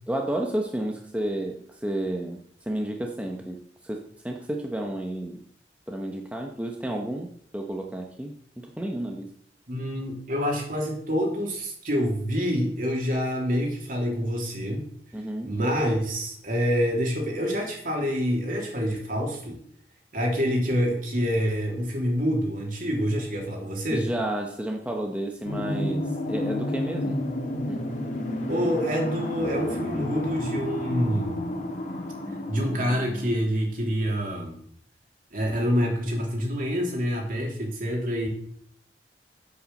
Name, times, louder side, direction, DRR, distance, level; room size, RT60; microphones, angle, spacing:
voice 1, 0.1-5.4 5.9-9.3 15.1-15.5 23.9-27.2 27.7-27.8, right 1 dB, 10° right, 1 dB, 1.0 m, -31 dB
voice 2, 9.7-14.9 15.4-19.6 20.1-24.1 28.5-31.5 32.5-34.6 35.3-38.3, equal, 50° right, 0 dB, 3.4 m, -27 dB
sound 1, 25.5-33.3, left 1 dB, 45° left, 2.0 m, -31 dB
8.4 x 7.9 x 7.7 m, 0.64 s
head